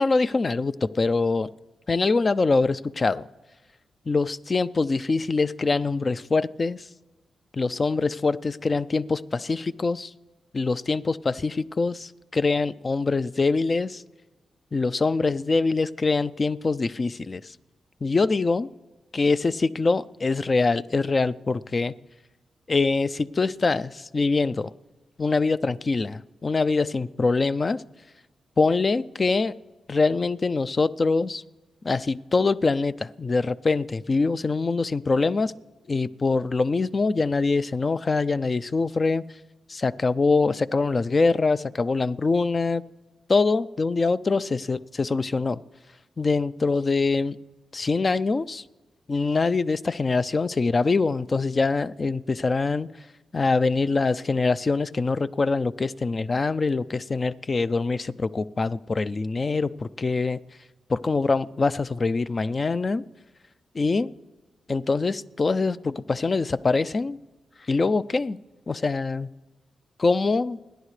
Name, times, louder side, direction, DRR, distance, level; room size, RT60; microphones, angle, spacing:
voice 1, 0.0-1.5 1.9-3.3 4.1-6.8 7.5-10.1 10.5-14.0 14.7-17.4 18.0-18.7 19.1-21.9 22.7-24.7 25.2-27.8 28.6-29.5 29.9-31.4 31.8-35.5 35.9-39.2 39.7-42.8 43.3-45.6 46.2-47.4 47.7-48.6 49.1-52.9 53.3-60.4 60.9-63.0 63.7-64.1 64.7-67.2 67.7-68.4 68.7-69.3 70.0-70.6, left 3 dB, 40° left, 15 dB, 0.4 m, -24 dB
29.0 x 10.0 x 3.3 m, 1.1 s
cardioid pair, 60°, 0 cm